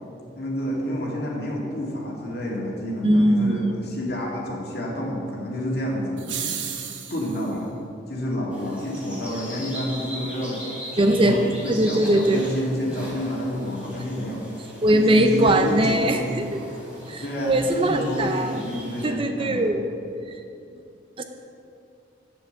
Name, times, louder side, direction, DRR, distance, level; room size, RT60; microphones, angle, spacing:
voice 1, 0.3-7.8 8.1-10.6 10.9-14.4 14.9-16.4 17.2-19.7, equal, 55° left, -3 dB, 2.3 m, -29 dB
voice 2, 3.0-3.6 11.0-11.4 11.7-12.4 14.8-16.6 17.1-18.6 19.0-19.8 21.2-21.3, right 1 dB, 30° right, 6 dB, 0.5 m, -20 dB
sound 1, 6.2-7.5, right 8 dB, 80° right, 1.0 m, -32 dB
sound 2, 8.5-19.1, equal, 5° right, 2.8 m, -39 dB
7.4 x 6.9 x 7.9 m, 2.5 s
head